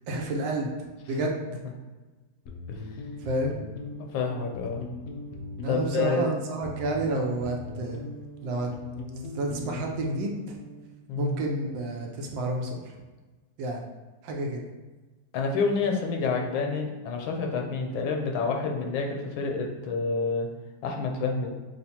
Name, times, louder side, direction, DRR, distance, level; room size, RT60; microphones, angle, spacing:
voice 1, 0.1-0.7 1.1-1.4 3.2-3.6 5.6-8.0 8.4-8.7 9.3-10.6 11.2-12.9 13.6-13.8 14.2-14.6, right 2 dB, 75° right, 1 dB, 1.3 m, -30 dB
sound 1, 2.5-10.9, left 2 dB, 75° left, 0.9 m, -40 dB
voice 2, 4.1-4.8 5.7-6.3 11.1-11.3 15.3-20.5 20.8-21.5, left 4 dB, 90° left, 2 dB, 1.5 m, -28 dB
6.5 x 2.5 x 2.8 m, 1.3 s
omnidirectional pair, 2.1 m